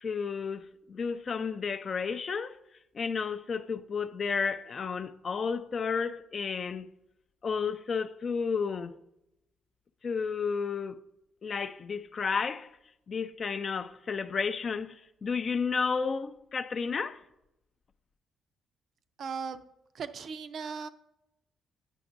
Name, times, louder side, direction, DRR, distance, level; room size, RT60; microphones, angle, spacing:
voice 1, 0.0-2.6 2.9-6.9 7.4-9.0 10.0-11.0 11.4-12.7 13.1-17.2, left 5 dB, 45° left, 0.4 m, -32 dB
voice 2, 19.2-19.6 19.9-20.9, right 5 dB, 60° right, 0.5 m, -37 dB
9.1 x 5.9 x 2.6 m
cardioid pair, 90°, 0 cm